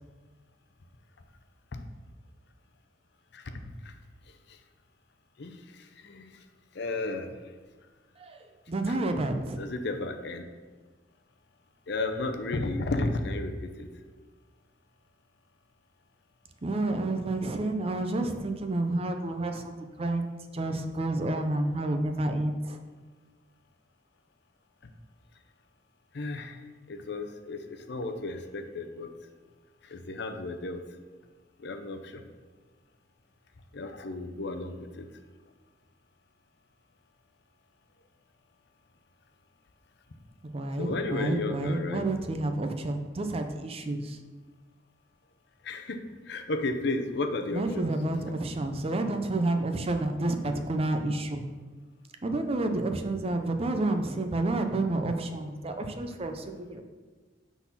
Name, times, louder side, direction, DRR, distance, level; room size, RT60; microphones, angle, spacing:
voice 1, 3.3-3.9 5.4-5.6 6.0-6.4 6.7-7.3 8.9-9.0 9.6-10.4 11.9-13.9 24.8-24.9 26.1-26.6 26.9-29.1 29.8-30.8 31.6-32.2 33.7-35.1 40.8-42.0 45.6-47.9, left 2 dB, 65° left, 6 dB, 0.6 m, -33 dB
voice 2, 8.2-9.6 16.6-20.3 20.5-22.8 40.5-44.2 47.5-51.4 52.2-56.8, right 2 dB, 30° right, 6 dB, 0.5 m, -30 dB
6.0 x 4.1 x 5.7 m, 1.3 s
head